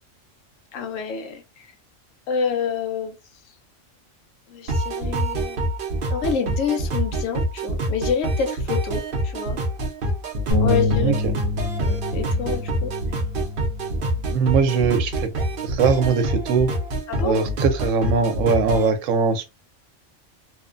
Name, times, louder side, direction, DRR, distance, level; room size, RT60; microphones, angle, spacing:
voice 1, 0.7-1.4 2.3-3.1 4.5-5.7 6.1-9.6 10.6-11.1 11.8-12.9 17.1-17.4, left 6 dB, 80° left, 1.0 m, -27 dB
sound 1, 4.7-18.9, right 1 dB, 55° right, 0.7 m, -26 dB
sound 2, 10.5-16.8, left 2 dB, 55° left, 1.2 m, -28 dB
voice 2, 11.0-11.3 14.3-15.3 15.6-16.7 17.2-19.5, right 5 dB, 80° right, 1.0 m, -21 dB
2.8 x 2.1 x 2.4 m
omnidirectional pair, 1.3 m